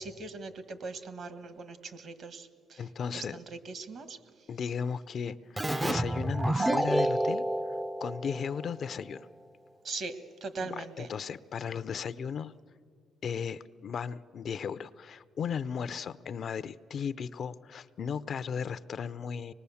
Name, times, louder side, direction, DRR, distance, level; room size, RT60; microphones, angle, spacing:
voice 1, 0.0-2.8 3.1-4.2 9.8-11.1, right 3 dB, 60° right, 11 dB, 1.5 m, -40 dB
voice 2, 2.8-3.4 4.5-7.4 8.0-9.3 10.6-12.5 13.2-19.5, left 7 dB, 55° left, 15 dB, 0.5 m, -36 dB
Keyboard (musical), 5.6-8.9, right 1 dB, 15° right, 0.5 m, -29 dB
25.0 x 20.0 x 7.1 m, 2.3 s
cardioid pair, 90°, 0 cm